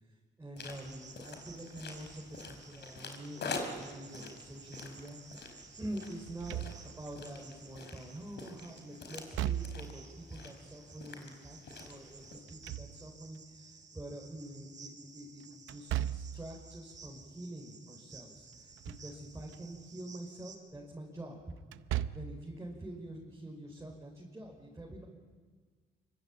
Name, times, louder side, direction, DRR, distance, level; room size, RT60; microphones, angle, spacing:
voice 1, 0.4-6.6 6.8-18.7 19.0-21.4 22.1-25.0, right 1 dB, 15° right, -2 dB, 5.3 m, -46 dB
sound 1, 0.6-12.4, left 3 dB, 60° left, 5.0 m, -46 dB
Cricket, 0.6-20.6, right 4 dB, 40° right, 5.0 m, -55 dB
Slam / Thump thud, 6.3-7.2 9.2-10.1 12.3-13.4 15.7-16.5 18.6-19.1 19.5-19.6 21.6-22.4, right 12 dB, 85° right, 0.8 m, -37 dB
25.5 x 24.0 x 9.0 m, 1.5 s
cardioid pair, 90°, 20 cm